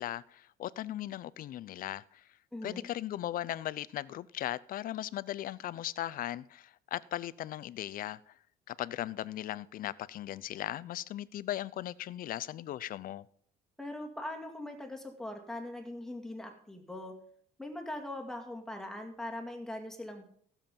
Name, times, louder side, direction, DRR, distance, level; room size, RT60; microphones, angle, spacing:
voice 1, 0.0-2.2 2.6-8.3 8.7-13.3, left 13 dB, 55° left, 0.5 m, -38 dB
voice 2, 2.5-2.9 13.8-17.1 17.6-20.2, left 1 dB, 5° left, 2.2 m, -41 dB
15.5 x 7.2 x 5.3 m
cardioid pair, 110°, 17 cm